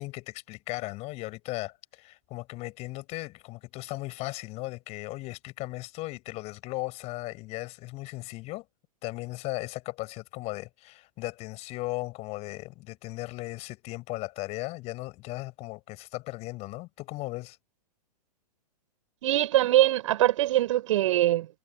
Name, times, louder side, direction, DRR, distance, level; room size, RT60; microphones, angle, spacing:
voice 1, 0.0-8.6 9.0-17.6, left 20 dB, 30° left, 5.7 m, -37 dB
voice 2, 19.2-21.5, right 14 dB, 50° right, 6.7 m, -23 dB
figure-of-eight pair, 115°, 21 cm